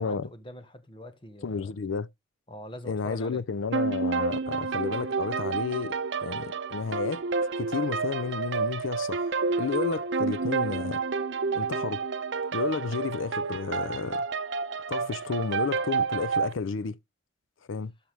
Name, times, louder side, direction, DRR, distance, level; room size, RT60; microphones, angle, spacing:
voice 1, 0.0-1.7 2.5-3.4, left 1 dB, 25° left, 1.2 m, -44 dB
voice 2, 1.4-2.1 2.8-5.9 6.2-7.2 7.6-11.0 11.5-12.0 12.5-14.2 14.9-17.0 17.7-17.9, left 5 dB, 80° left, 0.5 m, -32 dB
sound 1, 3.7-16.5, right 4 dB, 65° right, 0.7 m, -30 dB
12.5 x 5.8 x 3.4 m
head